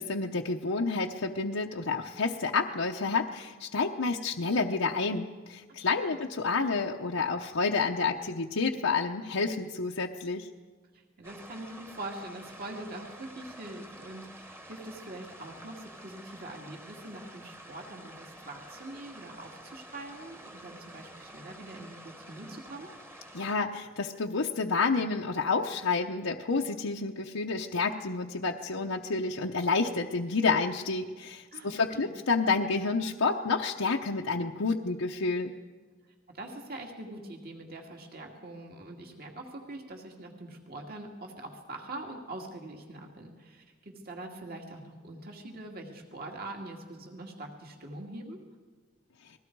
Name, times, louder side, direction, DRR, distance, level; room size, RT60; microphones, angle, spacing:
voice 1, 0.0-10.5 23.3-35.5, left 4 dB, 90° left, 0 dB, 0.9 m, -29 dB
voice 2, 10.9-22.9 31.5-32.1 36.0-48.4, right 2 dB, 50° right, 1 dB, 2.4 m, -43 dB
sound 1, 11.2-23.5, right 1 dB, 10° right, 1.3 m, -49 dB
29.5 x 20.5 x 4.7 m, 1.5 s
head